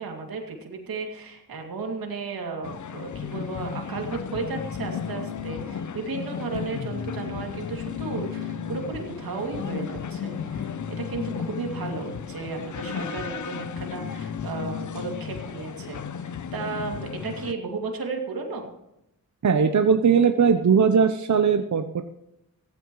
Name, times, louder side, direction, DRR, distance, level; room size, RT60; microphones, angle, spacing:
voice 1, 0.0-18.7, right 4 dB, 85° right, 2 dB, 2.6 m, -34 dB
sound 1, 2.6-17.5, left 7 dB, 55° left, 0.8 m, -34 dB
voice 2, 19.4-22.0, right 6 dB, 55° right, 7 dB, 0.9 m, -19 dB
16.0 x 14.5 x 3.2 m, 0.85 s
cardioid pair, 55°, 35 cm